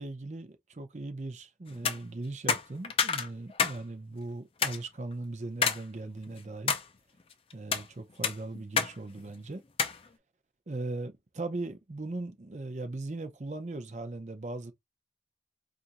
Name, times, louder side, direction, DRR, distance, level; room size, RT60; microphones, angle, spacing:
voice 1, 0.0-6.8 7.5-9.6 10.7-14.7, right 2 dB, 40° right, 0.6 m, -39 dB
sound 1, 1.7-2.0 2.5-3.8 4.1-4.2 4.6-4.8 5.6-5.8 6.3-6.8 7.5-7.9 8.2-8.9 9.2-9.3 9.8-10.0, left 6 dB, 30° left, 0.4 m, -28 dB
4.3 x 2.5 x 2.6 m
head